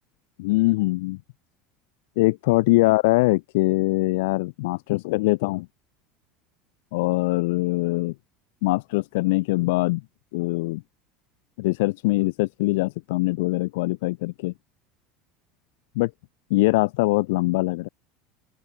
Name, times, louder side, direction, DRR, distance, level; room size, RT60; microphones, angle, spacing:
voice 1, 0.4-1.2 2.1-5.7 6.9-8.1 8.6-10.0 10.3-10.8 11.6-14.5 15.9-16.1 16.5-17.9, left 22 dB, 75° left, 3.4 m, -22 dB
open air
hypercardioid pair, 95°, 0 cm